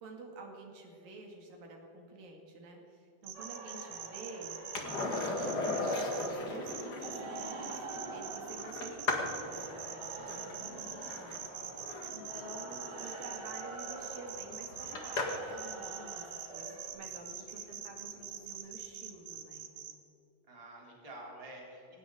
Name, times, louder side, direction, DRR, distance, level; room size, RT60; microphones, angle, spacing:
voice 1, 0.0-4.5 5.2-11.4 12.1-19.9, right 2 dB, 80° right, 1 dB, 4.1 m, -49 dB
sound 1, 3.2-6.3 6.7-19.9, right 9 dB, 65° right, 2.0 m, -44 dB
sound 2, 3.3-16.9, right 3 dB, 45° right, 1.6 m, -47 dB
voice 2, 3.7-4.0 11.2-11.8 12.5-12.9 17.1-17.8 20.5-22.0, right 1 dB, 10° right, -3 dB, 3.2 m, -52 dB
Skateboard, 4.7-15.6 18.2-18.3, left 2 dB, 35° left, 1.8 m, -38 dB
18.5 x 18.5 x 3.9 m, 2.9 s
omnidirectional pair, 3.9 m